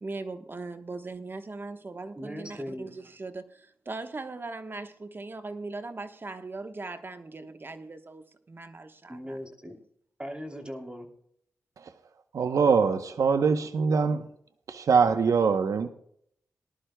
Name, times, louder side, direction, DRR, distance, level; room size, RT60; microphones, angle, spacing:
voice 1, 0.0-9.4, right 3 dB, 40° right, 1.1 m, -39 dB
voice 2, 2.1-2.9 9.1-9.7 10.2-11.1, equal, 15° right, 2.8 m, -39 dB
voice 3, 12.3-14.2 14.7-15.9, right 5 dB, 75° right, 0.8 m, -23 dB
19.5 x 11.5 x 2.2 m
cardioid pair, 65°, 6 cm